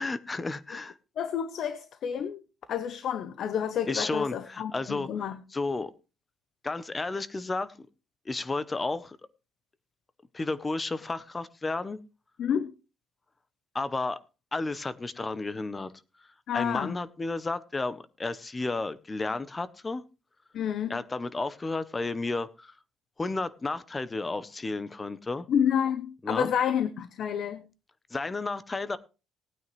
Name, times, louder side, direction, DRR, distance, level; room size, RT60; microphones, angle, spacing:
voice 1, 0.0-1.0 3.9-5.1 5.5-5.9 6.6-7.9 8.3-9.2 10.3-12.0 13.7-14.2 14.5-15.9 16.2-16.3 16.5-20.0 20.9-22.7 23.2-25.5 26.2-26.5 28.1-29.0, left 3 dB, 15° left, 0.7 m, -32 dB
voice 2, 1.2-2.4 2.7-5.4 12.4-12.7 16.5-17.0 20.5-21.0 25.5-27.7, left 8 dB, 50° left, 0.8 m, -29 dB
18.5 x 9.1 x 3.2 m
cardioid pair, 145°, 0 cm